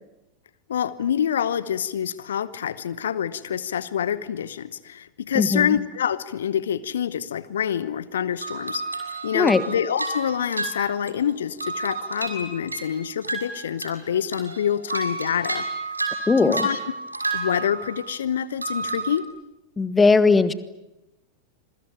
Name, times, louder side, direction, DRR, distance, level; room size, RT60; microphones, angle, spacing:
voice 1, 0.7-15.7 16.4-16.8 17.3-19.2, left 9 dB, 65° left, 17 dB, 1.0 m, -26 dB
voice 2, 5.3-5.7 9.3-9.6 16.3-16.7 19.8-20.5, left 4 dB, 15° left, 15 dB, 1.5 m, -18 dB
sound 1, 8.4-11.3 11.6-14.0 14.3-18.2 18.6-19.2, right 3 dB, 80° right, 6.2 m, -31 dB
27.0 x 23.0 x 9.1 m, 0.95 s
figure-of-eight pair, 90°, 0 cm